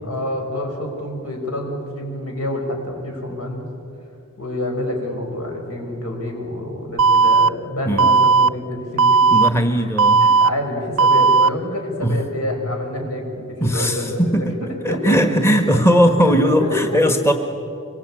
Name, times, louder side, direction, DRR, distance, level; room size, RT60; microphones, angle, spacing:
voice 1, 0.0-3.7 4.4-9.8 10.2-14.2 14.9-15.8 16.2-16.3 16.6-17.0, left 1 dB, 80° left, 2 dB, 6.1 m, -27 dB
Alarm, 7.0-7.5 8.0-8.5 9.0-9.5 10.0-10.5 11.0-11.5, right 4 dB, 65° right, 0.6 m, -14 dB
voice 2, 9.3-10.2 12.0-12.3 13.6-14.6 14.8-17.3, equal, 10° left, 6 dB, 1.2 m, -18 dB
25.5 x 23.5 x 8.9 m, 2.6 s
head